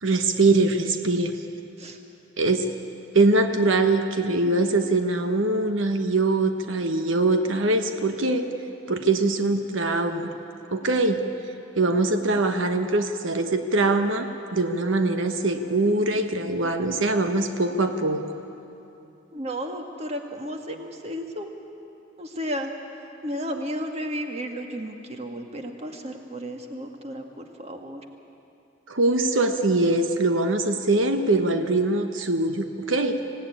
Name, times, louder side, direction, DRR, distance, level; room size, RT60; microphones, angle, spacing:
voice 1, 0.0-1.4 2.4-2.7 3.1-8.5 8.9-10.3 10.7-11.2 11.8-18.3 28.9-33.2, right 2 dB, 85° right, 6 dB, 1.2 m, -23 dB
voice 2, 19.3-21.5 22.2-22.7 23.2-28.0, equal, 35° right, 4 dB, 1.9 m, -33 dB
25.0 x 17.0 x 9.9 m, 2.8 s
head